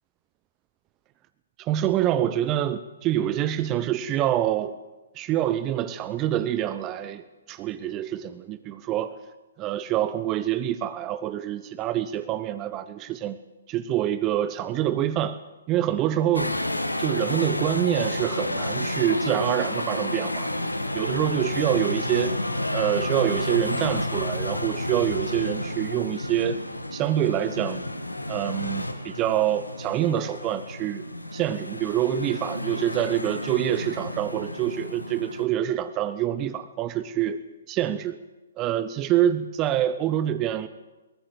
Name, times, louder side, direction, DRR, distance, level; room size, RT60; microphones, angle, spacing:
voice 1, 1.6-4.7 5.1-9.1 9.6-13.4 13.7-15.4 15.7-16.6 17.0-20.6 20.9-22.4 22.7-26.6 26.9-27.8 28.3-31.1 31.3-37.4 37.7-38.2 38.6-40.7, right 11 dB, 25° right, 13 dB, 0.9 m, -26 dB
sound 1, 16.3-35.4, left 1 dB, 85° left, 1.9 m, -30 dB
21.5 x 19.0 x 8.1 m, 1.2 s
figure-of-eight pair, 125°, 0 cm